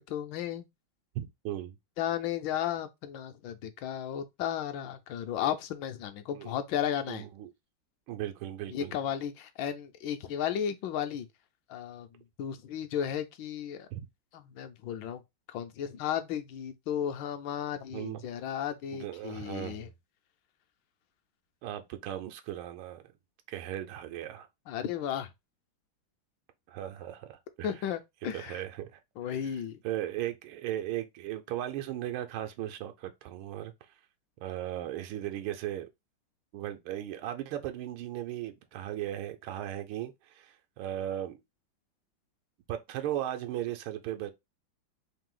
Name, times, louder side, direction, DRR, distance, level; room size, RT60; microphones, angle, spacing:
voice 1, 0.1-0.7 2.0-7.3 8.7-11.3 11.7-12.1 12.4-13.9 14.3-15.2 15.5-19.9 24.7-25.3 27.6-28.6 29.2-29.8, left 9 dB, 75° left, 1.2 m, -34 dB
voice 2, 1.1-1.8 6.3-6.6 7.1-7.5 8.1-8.9 13.9-14.0 17.9-18.2 18.9-19.9 21.6-23.0 23.5-24.5 26.7-27.7 28.3-29.0 29.8-33.7 34.4-35.9 36.5-41.4 42.7-44.3, right 12 dB, 90° right, 1.5 m, -37 dB
3.7 x 2.7 x 3.7 m
omnidirectional pair, 2.2 m